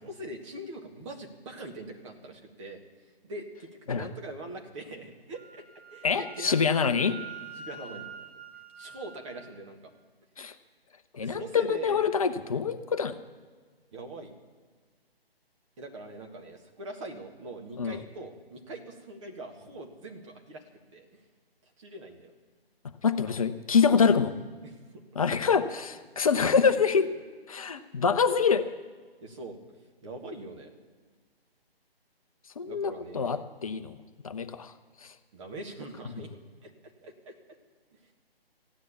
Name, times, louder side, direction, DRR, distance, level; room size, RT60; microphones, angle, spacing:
voice 1, 0.0-5.6 5.9-6.6 7.5-8.1 8.7-9.9 11.2-12.0 13.9-14.3 15.8-20.6 20.9-21.2 21.8-22.3 23.3-23.4 24.6-25.0 29.2-29.6 30.0-30.7 32.6-33.4 35.3-36.7 37.0-37.3 37.9-38.1, right 2 dB, 30° right, 2 dB, 1.7 m, -42 dB
Wind instrument woodwind instrument, 5.3-9.5, right 6 dB, ahead, 2.7 m, -46 dB
voice 2, 6.0-7.2 10.4-10.5 11.1-13.1 17.8-18.0 23.0-24.3 25.2-27.1 27.5-28.7 32.6-34.0 34.2-34.7 35.0-35.1, left 6 dB, 35° left, 10 dB, 0.7 m, -25 dB
14.5 x 9.8 x 8.4 m, 1.5 s
figure-of-eight pair, 150°, 31 cm